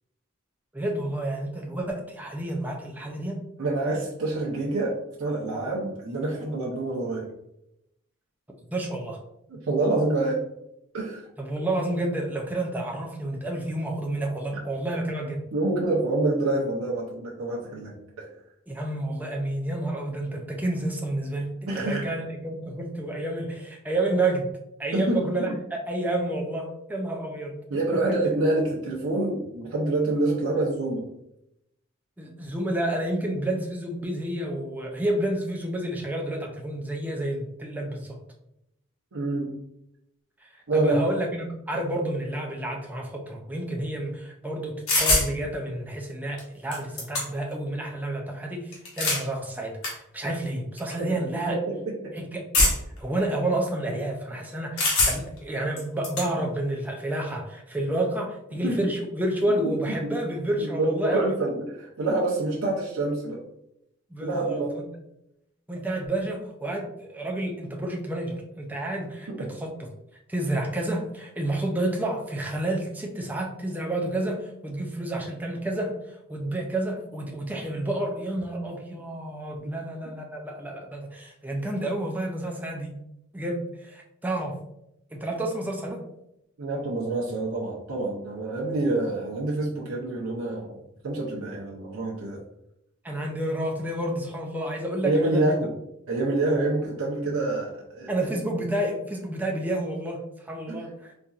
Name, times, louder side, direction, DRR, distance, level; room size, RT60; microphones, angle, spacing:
voice 1, 0.7-3.4 8.7-9.2 11.4-15.4 18.7-24.5 24.8-27.6 32.2-38.2 40.4-51.6 52.1-52.4 53.0-61.3 64.1-64.9 65.7-69.9 70.3-83.0 83.3-84.6 85.1-86.0 93.0-95.6 98.1-101.1, right 1 dB, 10° right, 0 dB, 0.4 m, -30 dB
voice 2, 3.6-7.3 9.5-10.4 10.9-11.3 15.5-18.3 21.7-22.1 24.9-25.6 27.7-31.0 39.1-39.5 40.7-41.0 51.5-51.7 58.6-58.9 59.6-59.7 60.0-60.1 60.6-63.4 64.2-64.7 69.3-69.4 86.6-92.4 95.0-95.7 96.1-98.1 100.7-100.8, right 2 dB, 90° right, -4 dB, 0.7 m, -27 dB
sound 1, 44.9-45.3 46.4-46.5 46.7-47.5 48.7-49.3 49.8-49.9 50.8-50.9 52.5-53.0 54.8-55.4 55.8-56.3, left 2 dB, 85° left, 1.1 m, -23 dB
4.1 x 2.5 x 2.4 m, 0.82 s
head